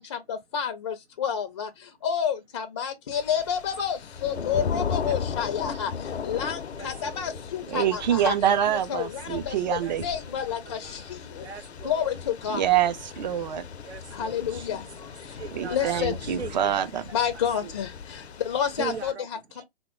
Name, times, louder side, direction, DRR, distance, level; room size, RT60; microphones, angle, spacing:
voice 1, 0.0-1.7 2.0-5.9 6.2-8.3 8.7-11.0 11.8-12.6 14.2-14.9 15.7-16.1 17.1-17.9 18.5-19.4, left 8 dB, 30° left, 0.4 m, -29 dB
Thunder / Rain, 3.1-19.1, left 6 dB, 85° left, 0.5 m, -37 dB
voice 2, 6.7-7.4 9.8-12.1 13.8-17.0 17.6-17.7 18.3-18.4 18.8-19.3 19.5-19.6, right 6 dB, 85° right, 0.6 m, -41 dB
voice 3, 7.7-10.0 12.5-13.6 15.5-17.0, right 10 dB, 45° right, 0.4 m, -25 dB
3.0 x 2.1 x 2.8 m
figure-of-eight pair, 135°, 32 cm